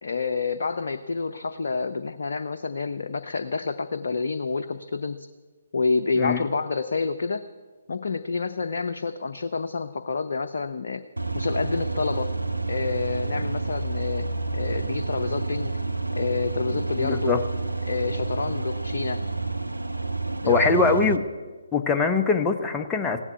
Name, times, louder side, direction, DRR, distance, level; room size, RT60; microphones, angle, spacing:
voice 1, 0.0-5.3 5.7-7.4 7.9-11.0 11.3-12.3 12.7-14.3 14.5-15.8 16.1-17.4 17.8-19.2 20.4-20.7, left 4 dB, 55° left, 7 dB, 0.7 m, -28 dB
sound 1, 11.2-21.2, right 3 dB, 85° right, 0.8 m, -29 dB
voice 2, 17.0-17.5 20.5-21.2 21.7-23.2, left 4 dB, 10° left, 3 dB, 0.9 m, -22 dB
16.0 x 11.0 x 8.1 m, 1.4 s
figure-of-eight pair, 140°, 0 cm